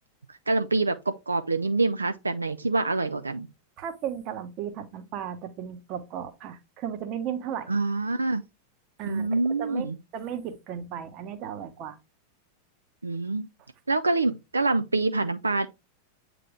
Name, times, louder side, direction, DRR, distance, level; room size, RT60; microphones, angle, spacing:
voice 1, 0.3-3.5 7.7-8.4 9.1-10.0 13.0-13.4 13.9-15.7, right 3 dB, 80° right, 0.4 m, -26 dB
voice 2, 3.8-7.7 9.0-9.9 10.1-12.0, right 9 dB, 40° right, 1.0 m, -35 dB
8.5 x 3.3 x 3.6 m
figure-of-eight pair, 90°, 0 cm